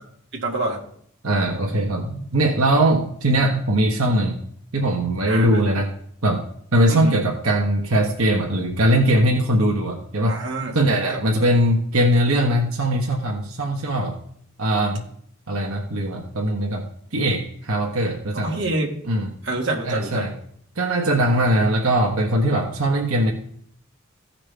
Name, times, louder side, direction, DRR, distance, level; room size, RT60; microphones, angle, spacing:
voice 1, 0.3-0.8 5.3-5.6 6.9-7.2 10.3-11.2 18.3-19.0 19.4-20.3, right 2 dB, 55° right, -1 dB, 2.2 m, -27 dB
voice 2, 1.2-4.3 4.7-5.9 6.2-6.4 6.7-10.4 10.7-14.2 14.6-15.0 15.5-16.9 17.1-18.6 19.1-19.3 19.8-20.3 20.8-23.3, right 1 dB, 85° right, 0 dB, 1.4 m, -20 dB
15.5 x 5.9 x 3.4 m, 0.63 s
head